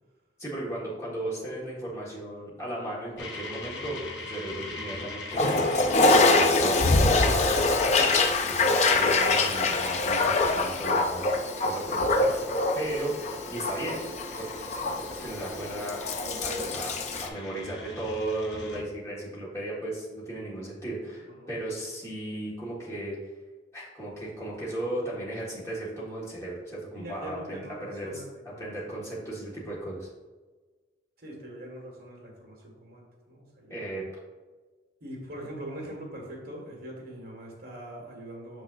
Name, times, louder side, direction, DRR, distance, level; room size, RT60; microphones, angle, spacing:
voice 1, 0.4-5.6 6.0-13.1 13.5-14.1 14.4-16.9 17.2-23.2 23.7-28.2 28.6-30.1 33.7-34.0, right 1 dB, 15° left, -7 dB, 1.5 m, -35 dB
sound 1, 3.2-18.8, left 3 dB, 75° left, 0.7 m, -44 dB
Toilet flush, 5.3-17.3, left 3 dB, 35° left, 0.4 m, -24 dB
voice 2, 16.2-16.9 21.1-21.5 26.9-28.9 31.2-33.9 35.0-38.6, right 1 dB, 55° right, -2 dB, 1.8 m, -42 dB
6.4 x 6.1 x 2.5 m, 1.3 s
head